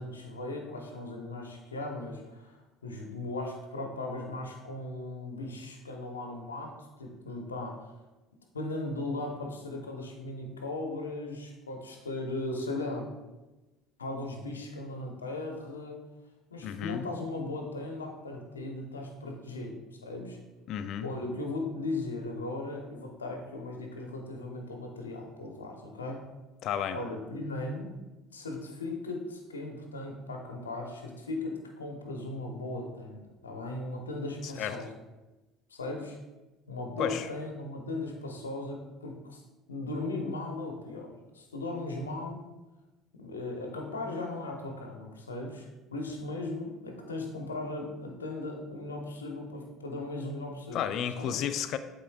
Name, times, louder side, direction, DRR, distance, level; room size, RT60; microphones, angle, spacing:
voice 1, 0.0-2.6 2.8-7.9 8.5-13.1 14.0-16.0 16.5-20.4 21.0-26.3 26.9-28.0 28.3-35.0 35.7-36.2 36.7-39.4 39.7-42.4 43.1-50.9 51.2-51.4, left 2 dB, 85° left, 1 dB, 1.0 m, -37 dB
voice 2, 16.6-17.1 20.7-21.1 26.6-27.0 34.4-34.8 37.0-37.3 50.7-51.8, left 9 dB, 55° left, 11 dB, 0.5 m, -32 dB
11.5 x 3.9 x 2.4 m, 1.1 s
figure-of-eight pair, 60°, 0 cm